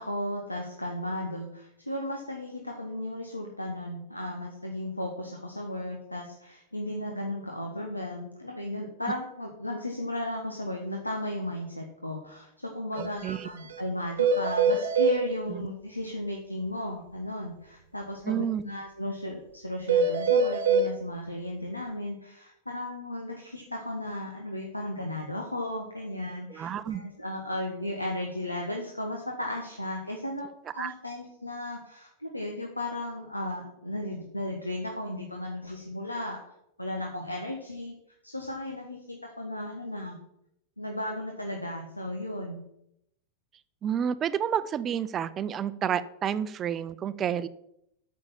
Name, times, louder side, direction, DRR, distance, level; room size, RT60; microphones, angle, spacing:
voice 1, 0.0-36.4 36.8-37.9 38.2-40.2 40.8-42.6, left 1 dB, 85° left, 2 dB, 1.3 m, -35 dB
sound 1, 12.9-13.1 13.3-13.4 13.7-13.8 14.2-15.2 19.9-20.9, right 4 dB, 60° right, 1.1 m, -23 dB
voice 2, 13.0-13.5 15.5-15.7 18.2-18.6 26.5-27.0 30.8-30.9 43.8-47.5, right 9 dB, 25° right, 15 dB, 0.6 m, -30 dB
8.9 x 6.4 x 7.3 m, 0.77 s
figure-of-eight pair, 90°, 0 cm